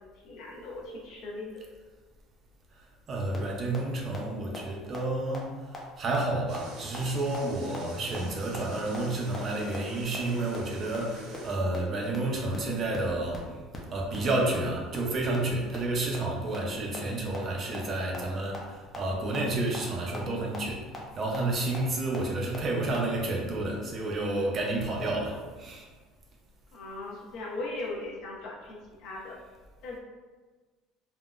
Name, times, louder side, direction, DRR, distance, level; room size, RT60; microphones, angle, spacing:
voice 1, 0.2-1.6 26.7-29.4 29.8-30.0, left 2 dB, 60° left, -3 dB, 0.7 m, -38 dB
voice 2, 3.1-5.5 6.0-13.5 13.9-20.9 21.2-25.9, right 2 dB, 35° right, 0 dB, 0.5 m, -30 dB
sound 1, 3.3-3.4 3.7-3.8 4.1-4.2 4.5-4.6 4.9-5.0 5.3-5.4 5.7-5.8 6.1-6.2 6.5-6.6 6.9-7.0 7.3-7.4 7.7-7.8 8.1-8.2 8.5-8.6 8.9-9.0 9.3-9.4 9.7-9.8 10.1-10.2 10.5-10.6 10.9-11.0 11.3-11.4 11.7-11.8 12.1-12.2 12.5-12.6 12.9-13.0 13.3-13.4 13.7-13.8 14.1-14.2 14.5-14.6 14.9-15.0 15.3-15.4 15.7-15.8 16.1-16.2 16.5-16.6 16.9-17.0 17.3-17.4 17.7-17.8 18.1-18.2 18.5-18.6 18.9-19.0 19.3-19.4 19.7-19.8 20.1-20.2 20.5-20.6 20.9-21.0 21.3-21.4 21.7-21.8 22.1-22.2 22.5-22.6 22.9-23.0, left 3 dB, 20° left, 0.5 m, -39 dB
sound 2, 6.5-11.5, right 2 dB, 75° right, 1.1 m, -46 dB
3.6 x 2.1 x 2.4 m, 1.4 s
cardioid pair, 150°, 0 cm